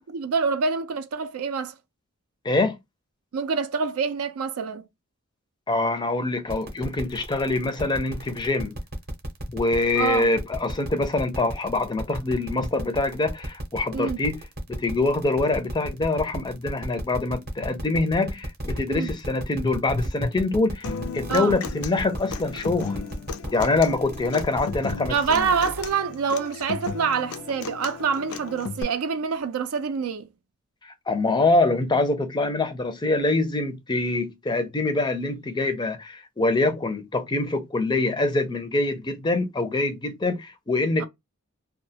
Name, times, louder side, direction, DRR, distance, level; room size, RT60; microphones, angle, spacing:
voice 1, 0.0-1.7 3.3-4.8 10.0-10.3 13.9-14.2 18.9-19.1 21.3-21.6 25.1-30.3 41.0-41.1, right 5 dB, 80° right, 0.4 m, -26 dB
voice 2, 2.4-2.8 5.7-8.7 9.5-14.4 14.7-23.1 23.5-25.5 30.8-41.1, left 2 dB, 20° left, 0.4 m, -25 dB
sound 1, 6.5-26.0, right 1 dB, 45° right, 0.7 m, -36 dB
Human voice / Acoustic guitar, 20.8-28.8, left 5 dB, 90° left, 0.4 m, -35 dB
2.3 x 2.1 x 2.7 m
head